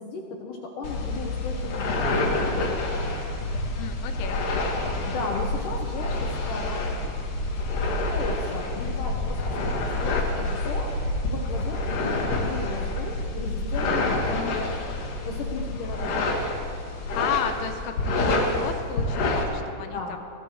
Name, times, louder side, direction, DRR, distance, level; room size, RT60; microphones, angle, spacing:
voice 1, 0.0-2.7 5.0-6.9 8.1-10.9 11.3-14.6 15.3-16.3 19.9-20.2, left 3 dB, 70° left, 0 dB, 2.1 m, -35 dB
sound 1, 0.8-19.4, left 2 dB, 50° left, 3.2 m, -28 dB
voice 2, 3.8-4.4 14.3-14.6 17.1-20.2, left 9 dB, 85° left, 6 dB, 3.3 m, -33 dB
23.0 x 17.0 x 3.2 m, 2.3 s
omnidirectional pair, 5.2 m